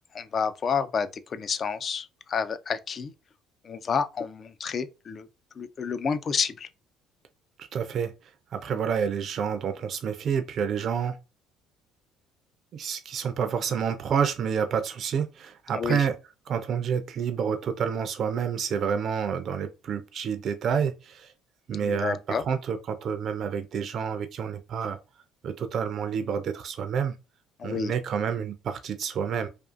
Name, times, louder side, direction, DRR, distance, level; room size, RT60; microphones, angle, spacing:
voice 1, 0.1-3.1 3.6-5.3 5.6-6.7 15.7-16.1 21.7-22.4 27.6-27.9, left 6 dB, 45° left, 0.3 m, -29 dB
voice 2, 7.6-11.2 12.7-16.2 16.5-21.3 21.7-25.0 25.4-27.2 27.6-29.5, right 7 dB, 55° right, 0.4 m, -29 dB
2.5 x 2.3 x 2.4 m
supercardioid pair, 80°, 0 cm